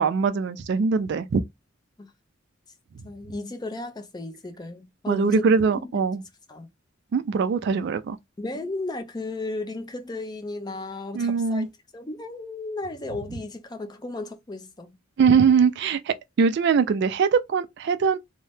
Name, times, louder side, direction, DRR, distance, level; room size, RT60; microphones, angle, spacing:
voice 1, 0.0-1.4 5.1-6.2 7.1-8.2 11.1-11.7 15.2-18.2, right 5 dB, 55° right, 0.3 m, -22 dB
voice 2, 3.0-5.4 6.5-6.7 8.4-11.7 11.9-14.9, left 2 dB, 20° left, 0.5 m, -34 dB
2.7 x 2.1 x 3.2 m
head